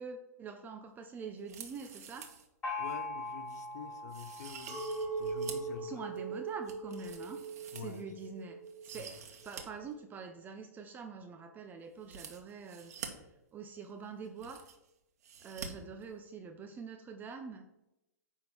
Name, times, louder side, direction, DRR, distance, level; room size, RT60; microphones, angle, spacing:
voice 1, 0.0-2.3 5.8-7.4 7.8-12.9 13.5-14.7 15.4-17.7, right 5 dB, 20° right, 0.6 m, -45 dB
sound 1, 1.4-2.5 2.8-2.9 3.5-3.6 4.1-5.7 6.2-8.3 8.7-9.6 9.9-10.0 12.0-13.1 13.9-14.0 14.2-14.9 15.2-15.7 16.0-16.1, right 7 dB, 70° right, 1.5 m, -48 dB
Gong, 2.6-6.1, left 3 dB, 15° left, 3.4 m, -42 dB
voice 2, 2.8-6.1 7.7-8.2 8.9-9.3 15.7-15.9, left 7 dB, 75° left, 1.0 m, -48 dB
Chink clink, 4.7-10.1, right 4 dB, 35° right, 1.7 m, -40 dB
9.5 x 3.7 x 6.2 m
hypercardioid pair, 135°, 9 cm